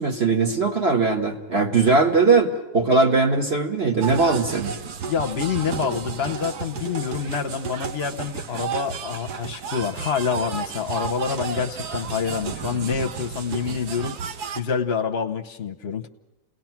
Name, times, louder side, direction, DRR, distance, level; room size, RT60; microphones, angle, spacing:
voice 1, 0.0-4.7, right 4 dB, 40° right, 2 dB, 1.5 m, -20 dB
sound 1, 4.0-14.6, right 6 dB, 65° right, 1.5 m, -32 dB
voice 2, 5.1-14.2 14.5-16.1, left 6 dB, 45° left, 5 dB, 1.0 m, -27 dB
29.0 x 18.5 x 5.9 m, 0.95 s
omnidirectional pair, 1.9 m